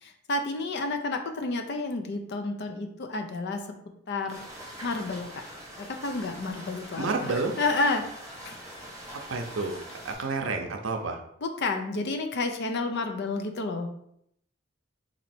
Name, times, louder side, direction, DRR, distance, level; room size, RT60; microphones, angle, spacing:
voice 1, 0.0-3.7 4.1-4.4 4.8-5.3 5.8-8.0 8.4-8.6 10.1-10.3 11.4-14.1, left 3 dB, 55° left, 6 dB, 0.5 m, -30 dB
sound 1, 4.3-10.1, right 1 dB, 15° right, 1.1 m, -44 dB
voice 2, 7.0-7.5 9.3-9.8 10.0-11.2, right 3 dB, 70° right, 4 dB, 0.6 m, -29 dB
3.1 x 2.7 x 4.2 m, 0.74 s
head